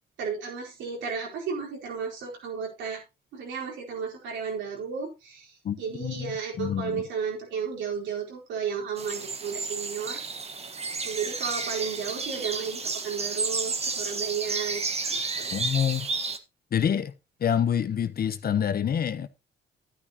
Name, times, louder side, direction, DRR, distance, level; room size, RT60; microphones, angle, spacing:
voice 1, 0.2-3.0 3.3-10.2 11.0-15.6, right 6 dB, 80° right, 4.4 m, -33 dB
voice 2, 5.6-7.0 15.5-16.1 16.7-17.1 17.4-19.3, left 8 dB, 55° left, 1.1 m, -27 dB
sound 1, 9.0-16.4, right 4 dB, 35° right, 1.5 m, -32 dB
11.5 x 10.0 x 2.9 m
cardioid pair, 75°, 19 cm